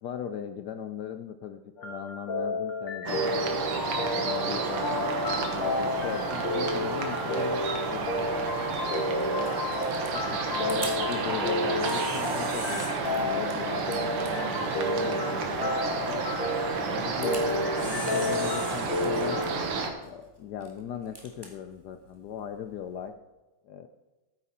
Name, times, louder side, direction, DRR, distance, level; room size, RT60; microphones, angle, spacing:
voice 1, 0.0-3.5 4.1-9.5 10.1-10.2 10.5-16.2 16.9-19.4 20.0-23.1 23.6-23.9, left 8 dB, 85° left, 8 dB, 0.9 m, -39 dB
sound 1, 1.8-19.7, left 2 dB, 60° left, 2.5 m, -31 dB
sound 2, 3.1-19.9, right 4 dB, 85° right, 2.2 m, -31 dB
Camera, 7.6-23.1, right 1 dB, 10° right, 1.7 m, -45 dB
13.0 x 9.5 x 4.2 m, 1.1 s
omnidirectional pair, 2.4 m